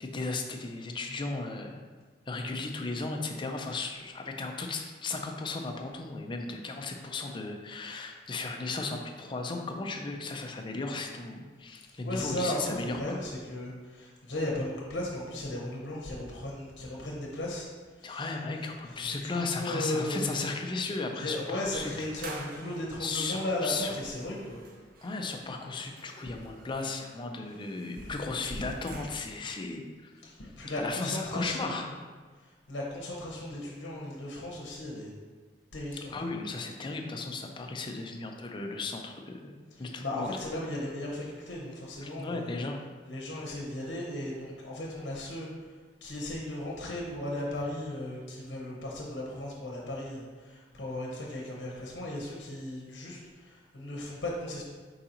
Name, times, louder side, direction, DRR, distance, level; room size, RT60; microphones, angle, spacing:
voice 1, 0.0-1.8 2.3-13.2 18.0-21.9 22.2-22.3 23.0-24.0 25.0-30.3 30.8-31.9 36.1-40.3 42.0-42.8, left 3 dB, 30° left, 3 dB, 0.4 m, -35 dB
voice 2, 11.7-17.7 18.0-18.3 18.8-20.4 21.2-24.6 28.0-28.2 30.2-32.0 32.4-35.1 35.7-36.1 39.7-42.6 43.0-45.5 46.0-54.6, left 1 dB, 80° left, -3 dB, 0.8 m, -36 dB
sound 1, 22.0-29.5, right 2 dB, 55° right, 0.6 m, -50 dB
4.7 x 3.9 x 2.9 m, 1.4 s
head